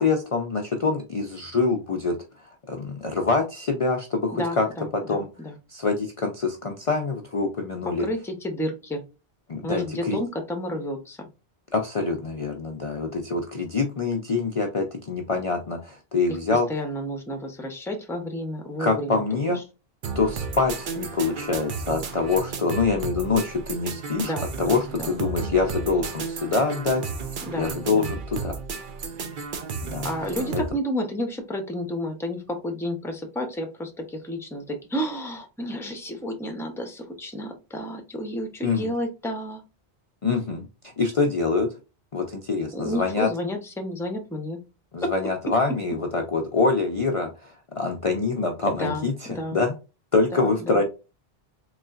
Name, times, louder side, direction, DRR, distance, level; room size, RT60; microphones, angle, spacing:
voice 1, 0.0-4.7 4.9-5.3 5.7-8.1 9.5-10.2 11.7-16.7 18.8-19.6 20.1-28.5 29.8-30.1 30.5-30.6 38.6-38.9 40.2-41.7 42.1-43.3 44.9-49.7 50.1-50.8, left 4 dB, 40° left, 2 dB, 0.5 m, -25 dB
voice 2, 4.3-5.5 7.8-9.0 9.6-11.3 16.3-19.2 24.2-25.1 27.4-28.1 30.0-39.6 42.7-44.6 45.0-45.1 45.5-45.6 48.8-49.6 50.3-50.8, equal, 5° left, 4 dB, 0.7 m, -31 dB
sound 1, 20.0-30.7, right 5 dB, 55° right, 0.8 m, -33 dB
4.0 x 3.1 x 2.4 m, 0.29 s
omnidirectional pair, 1.1 m